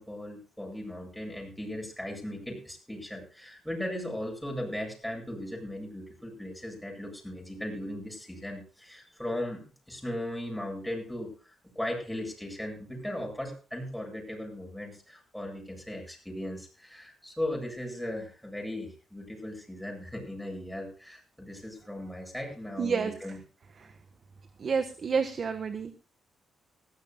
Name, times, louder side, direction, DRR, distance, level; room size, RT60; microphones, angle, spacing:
voice 1, 0.0-23.4, left 1 dB, ahead, 1 dB, 7.9 m, -37 dB
voice 2, 22.8-23.1 24.6-25.9, right 5 dB, 45° right, 9 dB, 1.3 m, -29 dB
19.5 x 16.0 x 2.3 m, 0.36 s
cardioid pair, 105°, 0 cm